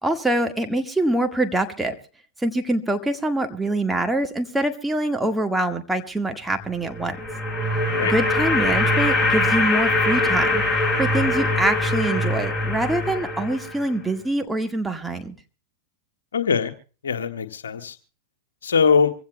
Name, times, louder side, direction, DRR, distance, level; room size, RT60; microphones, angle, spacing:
voice 1, 0.0-1.9 2.4-7.2 8.0-15.3, right 1 dB, 5° right, 1.7 m, -24 dB
sound 1, 6.8-14.0, left 2 dB, 10° left, 4.3 m, -22 dB
voice 2, 16.3-16.7 17.0-18.0 18.6-19.1, left 6 dB, 75° left, 1.5 m, -21 dB
25.0 x 16.5 x 2.2 m
figure-of-eight pair, 95°, 0 cm